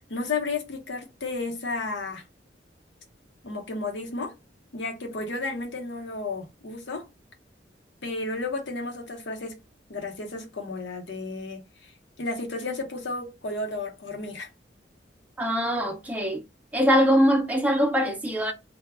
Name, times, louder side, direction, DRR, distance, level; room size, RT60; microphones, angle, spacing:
voice 1, 0.1-2.2 3.4-4.3 4.7-7.1 8.0-9.6 9.9-11.9 12.2-14.5, left 3 dB, 75° left, 0.7 m, -32 dB
voice 2, 15.4-16.4 16.7-18.5, equal, 10° right, 0.4 m, -22 dB
2.1 x 2.0 x 3.4 m
head